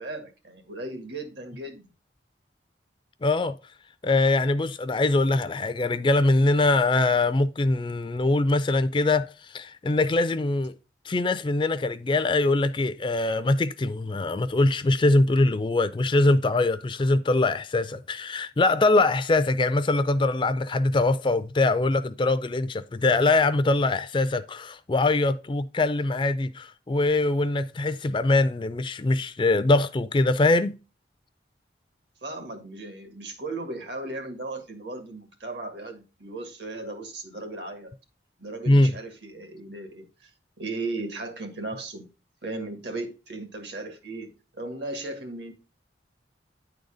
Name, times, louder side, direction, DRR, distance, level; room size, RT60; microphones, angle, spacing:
voice 1, 0.0-1.9 32.2-37.9 38.4-40.3 40.6-42.1 42.4-45.5, right 2 dB, 70° right, 1.8 m, -36 dB
voice 2, 3.2-3.6 4.0-10.7 11.0-30.8 38.7-38.9, left 2 dB, 25° left, 0.4 m, -23 dB
9.7 x 4.0 x 4.9 m
head